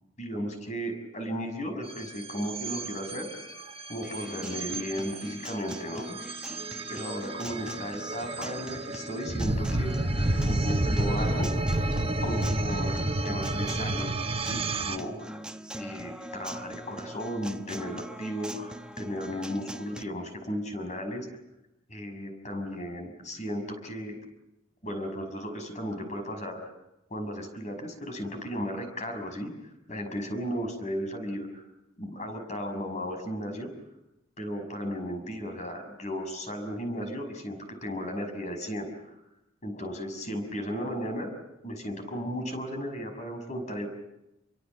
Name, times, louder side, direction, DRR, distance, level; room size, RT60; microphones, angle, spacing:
voice 1, 0.2-3.5 3.9-6.6 6.9-11.5 12.2-15.4 15.7-21.3 21.9-24.2 24.8-26.6 27.1-29.5 29.9-31.6 32.0-33.7 34.4-39.2 39.6-41.3 41.6-43.9, equal, 35° left, 6 dB, 6.1 m, -35 dB
sound 1, 1.9-15.0, right 2 dB, 30° right, 1.2 m, -30 dB
Acoustic guitar, 4.0-20.0, right 1 dB, 5° right, 1.0 m, -43 dB
28.5 x 23.5 x 7.5 m, 0.92 s
head